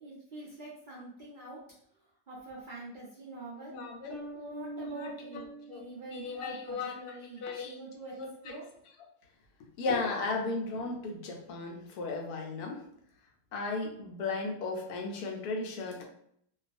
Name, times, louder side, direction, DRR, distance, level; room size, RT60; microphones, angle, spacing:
voice 1, 0.0-1.6 2.3-3.8 4.3-8.1 8.4-8.7, right 2 dB, 70° right, -5 dB, 0.4 m, -45 dB
voice 2, 3.7-4.1 5.0-5.4 5.7-5.8 6.1-7.0 7.4-7.8 8.1-8.5 9.8-12.8 13.5-16.0, left 3 dB, 80° left, 1 dB, 1.1 m, -35 dB
sound 1, 4.1-6.7, right 1 dB, 5° left, 0.5 m, -44 dB
2.6 x 2.3 x 2.5 m, 0.69 s
omnidirectional pair, 1.6 m